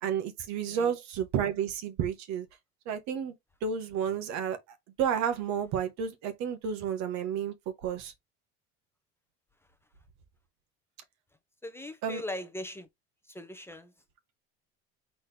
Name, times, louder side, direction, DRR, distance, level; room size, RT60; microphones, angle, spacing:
voice 1, 0.0-2.5 2.8-3.3 3.6-4.6 5.0-7.5 7.8-8.1 12.0-12.2, right 8 dB, 65° right, 1.4 m, -31 dB
voice 2, 0.6-1.0 11.6-12.9 13.3-13.9, left 1 dB, 10° left, 0.7 m, -40 dB
4.3 x 3.7 x 3.4 m
cardioid pair, 130°, 30 cm